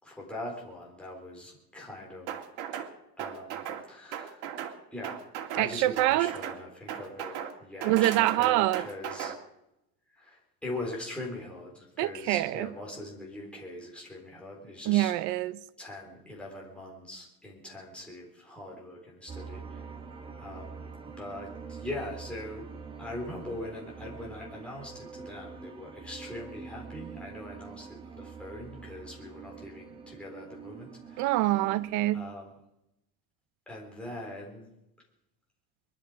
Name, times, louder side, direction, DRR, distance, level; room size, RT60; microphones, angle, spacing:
voice 1, 0.0-2.3 3.2-4.4 4.9-5.2 5.5-9.3 10.1-15.1 15.8-19.8 20.4-20.8 21.2-22.7 23.0-31.5 32.1-32.5 33.7-34.7, left 1 dB, 5° left, 4.0 m, -41 dB
sound 1, 2.3-2.9 3.2-3.8 4.1-4.8 5.0-5.7 6.0-6.6 6.9-7.5 7.8-9.4, right 9 dB, 85° right, 2.4 m, -37 dB
voice 2, 5.6-6.3 7.8-8.9 12.0-12.7 14.9-15.6 31.2-32.3, right 16 dB, 60° right, 0.7 m, -25 dB
sound 2, 19.3-32.2, right 5 dB, 15° right, 1.4 m, -45 dB
22.5 x 12.5 x 5.1 m
cardioid pair, 175°, 34 cm